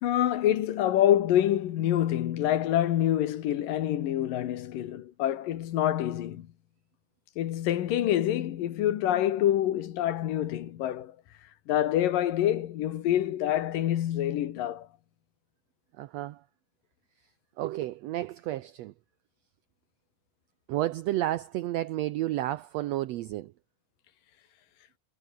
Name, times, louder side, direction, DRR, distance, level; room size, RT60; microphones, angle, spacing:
voice 1, 0.0-6.5 7.4-11.2 11.7-14.9, left 12 dB, 90° left, 3.2 m, -26 dB
voice 2, 16.0-16.4 17.6-18.9 20.7-23.5, right 15 dB, 85° right, 1.4 m, -31 dB
omnidirectional pair, 3.9 m